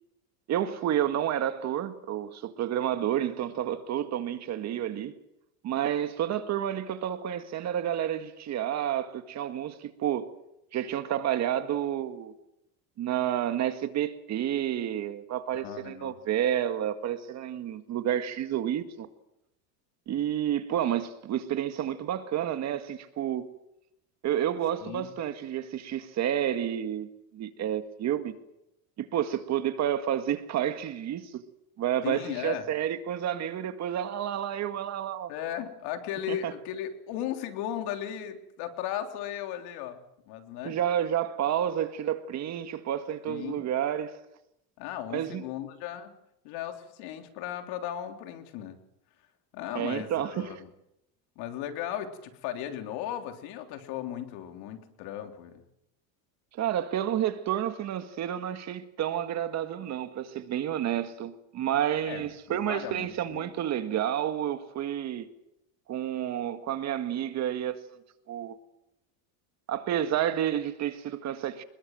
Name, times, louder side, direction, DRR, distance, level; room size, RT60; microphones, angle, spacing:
voice 1, 0.5-5.1 5.6-10.3 10.7-12.3 13.0-19.1 20.1-23.5 24.2-28.3 29.0-31.4 31.8-35.3 36.3-36.5 40.6-44.2 45.1-45.4 49.7-50.5 56.6-65.3 65.9-67.8 68.3-68.6 69.7-71.6, right 10 dB, 40° right, 1.9 m, -30 dB
voice 2, 15.5-16.2 24.8-25.1 32.0-32.7 35.3-40.0 40.3-40.8 43.3-43.7 44.8-46.1 46.4-48.8 49.5-50.7 51.4-55.6 62.0-63.5, left 11 dB, 65° left, 3.5 m, -36 dB
26.5 x 21.5 x 7.8 m
supercardioid pair, 140°, 42 cm